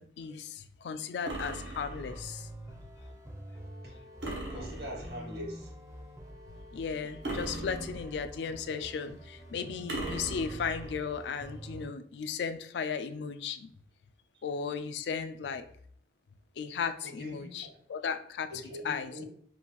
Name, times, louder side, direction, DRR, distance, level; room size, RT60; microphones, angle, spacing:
voice 1, 0.0-2.5 6.7-13.7 14.4-15.6 16.6-18.5 18.8-19.2, left 6 dB, 75° left, 10 dB, 0.3 m, -36 dB
sound 1, 1.3-2.3 4.2-5.3 7.2-8.4 9.9-11.0, right 1 dB, 80° right, 1.1 m, -39 dB
sound 2, 1.9-11.9, equal, 15° right, 0.5 m, -46 dB
voice 2, 4.5-5.7 14.3-14.4 17.0-17.8 18.5-19.2, equal, 60° right, -1 dB, 1.3 m, -42 dB
5.3 x 2.4 x 3.0 m, 0.62 s
head